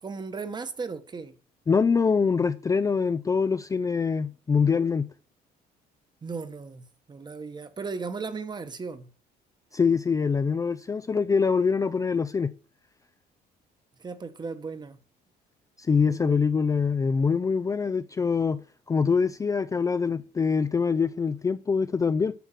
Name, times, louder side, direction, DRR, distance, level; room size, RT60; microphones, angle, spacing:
voice 1, 0.0-1.4 6.2-9.1 14.0-15.0 16.0-16.4, right 4 dB, 25° right, 1.1 m, -36 dB
voice 2, 1.7-5.1 9.7-12.5 15.9-18.6 18.9-22.3, left 5 dB, 20° left, 0.4 m, -24 dB
10.0 x 6.4 x 5.8 m
cardioid pair, 110°, 17 cm